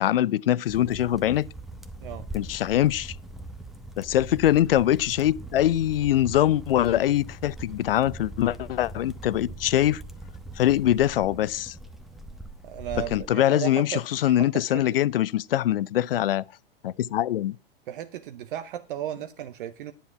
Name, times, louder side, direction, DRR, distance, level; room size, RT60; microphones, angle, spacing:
voice 1, 0.0-1.5 2.3-3.2 4.0-10.0 10.6-11.7 13.1-16.4 16.8-17.6, left 12 dB, 75° left, 0.5 m, -23 dB
sound 1, 0.7-13.3, right 1 dB, ahead, 0.9 m, -41 dB
voice 2, 12.6-14.9 17.9-19.9, right 11 dB, 60° right, 0.8 m, -35 dB
10.0 x 7.3 x 5.8 m
hypercardioid pair, 100°, 29 cm